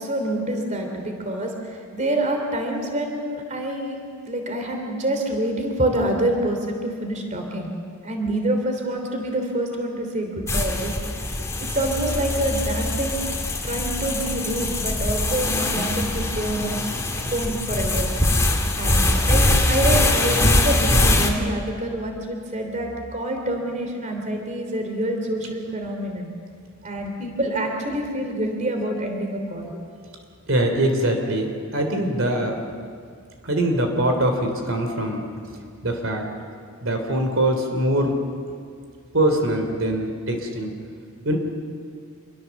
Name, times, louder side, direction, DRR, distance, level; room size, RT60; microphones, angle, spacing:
voice 1, 0.0-4.0 4.3-7.7 8.0-10.9 11.7-13.2 13.6-16.7 17.3-18.1 18.8-26.3 26.8-29.7, right 1 dB, 35° right, 3 dB, 3.2 m, -26 dB
sound 1, 10.5-21.3, left 1 dB, 15° left, 2.4 m, -22 dB
voice 2, 30.5-32.6 33.4-35.2 35.8-36.3 36.8-38.2 39.1-40.7 41.2-41.4, right 1 dB, 65° right, 4 dB, 3.3 m, -23 dB
27.0 x 23.0 x 7.2 m, 2.2 s
head